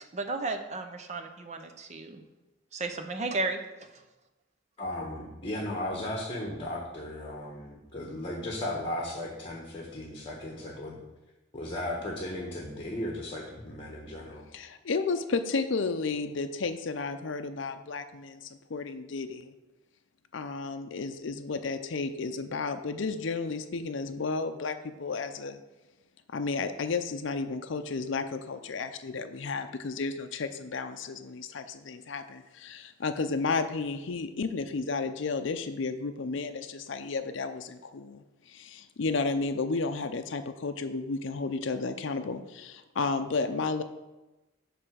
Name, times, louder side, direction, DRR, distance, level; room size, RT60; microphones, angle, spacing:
voice 1, 0.0-2.2 2.7-3.9, right 3 dB, 35° right, 7 dB, 0.7 m, -34 dB
voice 2, 4.8-11.0 11.5-14.4, left 1 dB, 25° left, -1 dB, 1.1 m, -36 dB
voice 3, 14.5-19.5 20.3-25.6 26.3-43.8, left 4 dB, 65° left, 8 dB, 0.5 m, -32 dB
9.6 x 3.3 x 6.2 m, 1.1 s
head